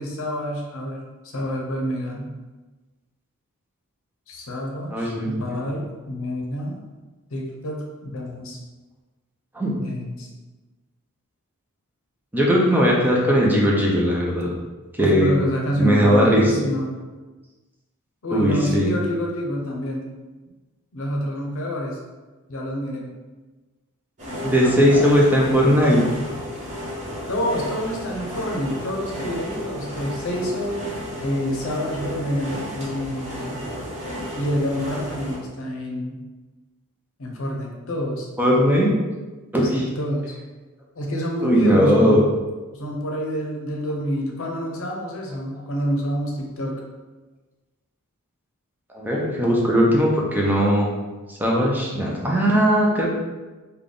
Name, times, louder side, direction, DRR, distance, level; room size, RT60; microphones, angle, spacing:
voice 1, 0.0-2.3 4.3-6.8 7.3-8.6 9.8-10.3 15.0-16.9 18.2-20.1 20.9-22.0 22.5-23.1 24.6-25.1 27.3-30.9 31.2-33.6 34.3-36.2 37.2-38.3 39.6-40.3 41.0-42.3 42.7-46.8, equal, 65° left, 0 dB, 0.7 m, -27 dB
voice 2, 4.9-5.6 9.5-9.8 12.3-14.5 14.9-15.3 15.8-16.6 18.3-18.9 24.4-26.0 38.4-38.9 39.5-39.8 41.4-42.2 48.9-50.9 51.3-53.1, equal, 10° right, -3 dB, 0.5 m, -18 dB
sound 1, 24.2-35.4, equal, 35° right, 1.0 m, -33 dB
3.4 x 2.3 x 3.7 m, 1.2 s
head